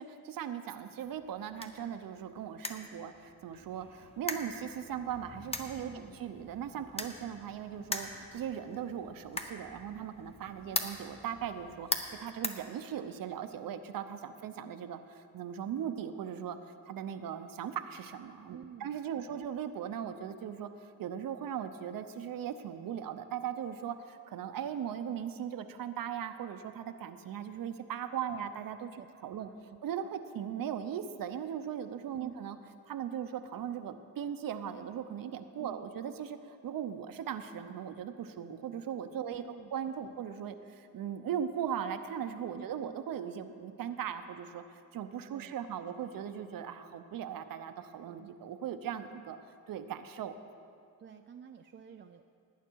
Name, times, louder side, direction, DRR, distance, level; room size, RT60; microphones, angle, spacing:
voice 1, 0.0-5.9 6.2-16.6 16.9-29.5 29.8-32.6 32.9-39.4 39.7-44.6 44.9-49.4 49.7-50.4, right 9 dB, 65° right, 8 dB, 0.7 m, -39 dB
sound 1, 1.0-13.3, left 2 dB, 15° left, 0.9 m, -42 dB
voice 2, 5.8-6.2 14.3-14.5 18.5-19.4 28.1-28.5 29.0-29.8 32.2-32.4 35.6-35.8 39.3-39.7 40.0-40.2 42.6-42.9 45.3-45.8 51.0-52.3, right 8 dB, 30° right, 5 dB, 0.4 m, -51 dB
18.0 x 9.3 x 4.6 m, 2.4 s
cardioid pair, 120°, 37 cm